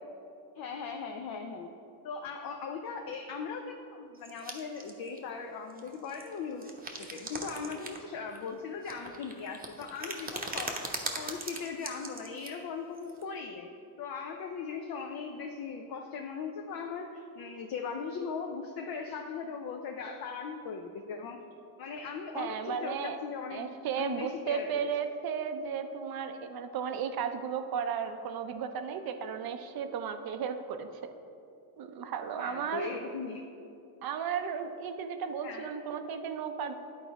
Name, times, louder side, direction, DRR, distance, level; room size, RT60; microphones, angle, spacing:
voice 1, 0.6-1.7 2.0-6.7 7.0-10.9 11.1-13.7 14.0-21.4 21.8-24.9 29.9-30.0 32.4-33.5 35.4-35.7, left 5 dB, 50° left, 3 dB, 0.6 m, -39 dB
sound 1, 4.2-5.2 5.7-8.0 8.3-12.5 12.9-13.2, right 2 dB, 20° right, 0.9 m, -40 dB
voice 2, 22.3-23.2 23.5-30.9 31.8-32.9 34.0-36.7, right 7 dB, 50° right, 8 dB, 0.6 m, -34 dB
10.5 x 4.0 x 4.6 m, 2.7 s
cardioid pair, 95°, 47 cm